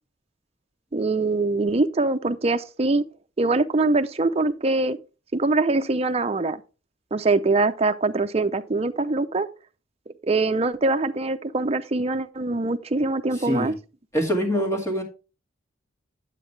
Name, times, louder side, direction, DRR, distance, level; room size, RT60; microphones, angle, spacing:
voice 1, 0.9-3.0 3.4-5.0 5.3-6.6 7.1-9.5 10.3-13.7, right 3 dB, 30° right, 0.6 m, -23 dB
voice 2, 13.3-13.7 14.1-15.0, equal, 15° left, 2.2 m, -24 dB
9.2 x 8.4 x 3.2 m
head